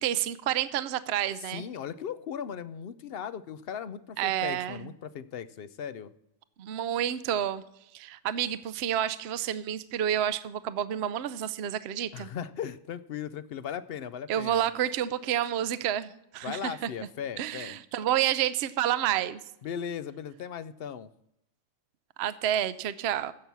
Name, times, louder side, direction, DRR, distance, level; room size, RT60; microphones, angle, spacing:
voice 1, 0.0-1.6 4.2-4.9 6.6-7.6 7.9-12.3 14.3-16.9 17.4-19.4 22.2-23.3, right 11 dB, 60° right, 14 dB, 0.8 m, -29 dB
voice 2, 1.5-6.1 12.1-14.7 16.4-17.8 19.6-21.1, left 8 dB, 60° left, 15 dB, 0.7 m, -37 dB
15.0 x 6.0 x 6.9 m, 0.81 s
omnidirectional pair, 1.4 m